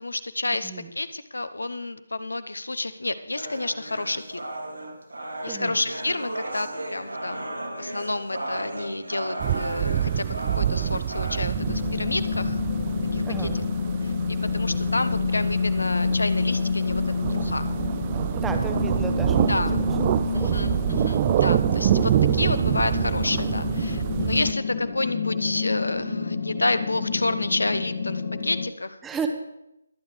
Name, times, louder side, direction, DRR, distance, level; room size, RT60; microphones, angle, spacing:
voice 1, 0.0-4.4 5.4-12.6 13.1-13.5 14.0-17.0 17.3-17.7 19.5-19.8 20.3-29.0, left 2 dB, 75° left, 12 dB, 0.8 m, -29 dB
sound 1, 3.4-11.4, right 1 dB, 80° right, 2.5 m, -35 dB
voice 2, 5.5-5.8 13.2-13.6 18.3-19.5 20.3-20.6 29.0-29.3, right 5 dB, 10° right, 6 dB, 0.9 m, -33 dB
sound 2, 9.4-24.5, right 11 dB, 25° right, 0.3 m, -26 dB
sound 3, 11.6-28.7, left 5 dB, 40° left, 1.3 m, -28 dB
22.5 x 8.8 x 3.3 m, 0.86 s
figure-of-eight pair, 150°, 0 cm